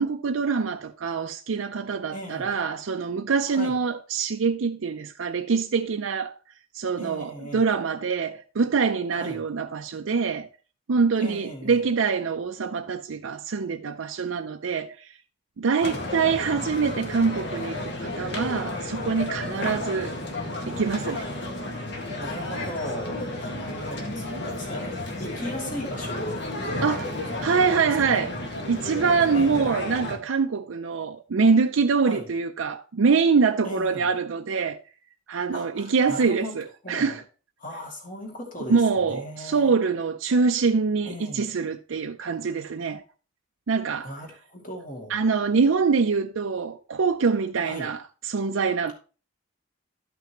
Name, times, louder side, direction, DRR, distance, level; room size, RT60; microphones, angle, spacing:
voice 1, 0.0-6.4 6.7-10.5 10.9-15.1 15.6-20.1 20.7-21.2 26.8-27.1 27.4-28.3 28.7-34.8 35.3-37.2 38.7-43.0 43.7-44.1 45.1-48.9, right 5 dB, 80° right, 0.5 m, -24 dB
voice 2, 2.1-2.5 3.5-3.8 7.0-7.7 9.1-9.4 11.2-11.8 15.7-16.0 19.5-19.8 21.0-21.2 22.2-28.2 29.3-29.7 32.0-32.3 33.6-34.1 35.5-36.6 36.8-37.2 37.6-39.7 41.0-41.5 44.0-45.1 47.7-47.9, equal, 40° left, 2.4 m, -37 dB
sound 1, 15.8-30.2, left 2 dB, 55° left, 1.7 m, -32 dB
12.5 x 5.8 x 3.0 m
head